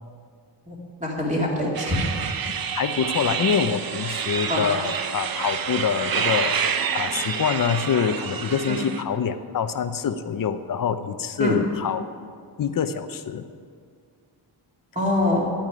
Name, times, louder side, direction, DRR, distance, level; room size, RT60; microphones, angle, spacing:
voice 1, 0.7-2.0 4.5-4.6 8.7-8.8 11.4-11.6 15.0-15.5, left 1 dB, 15° right, -4 dB, 2.6 m, -24 dB
sound 1, 1.7-9.0, right 7 dB, 50° right, 0.8 m, -28 dB
voice 2, 2.7-12.1 12.6-13.5, left 7 dB, 45° left, 10 dB, 0.7 m, -25 dB
10.5 x 9.1 x 9.6 m, 2.1 s
wide cardioid pair, 170°, 45 cm